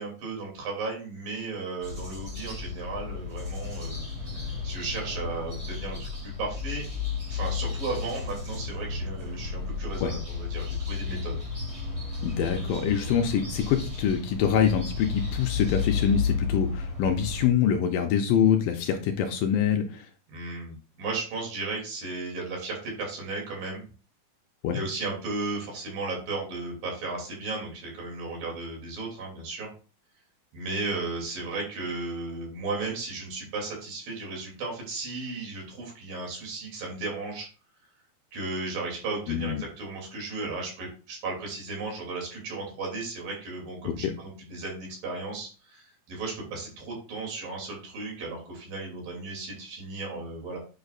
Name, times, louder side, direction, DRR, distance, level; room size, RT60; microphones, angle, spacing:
voice 1, 0.0-4.1 4.3-6.8 7.3-11.3 20.3-23.8 24.7-29.7 30.5-37.5 38.3-50.6, right 3 dB, 65° right, -1 dB, 4.5 m, -35 dB
sound 1, 1.8-17.5, left 5 dB, 25° right, 0.7 m, -33 dB
voice 2, 12.2-20.1 24.6-24.8 39.3-39.6 43.9-44.0, left 8 dB, 75° left, 5 dB, 2.2 m, -25 dB
8.8 x 6.6 x 2.4 m, 0.37 s
omnidirectional pair, 4.3 m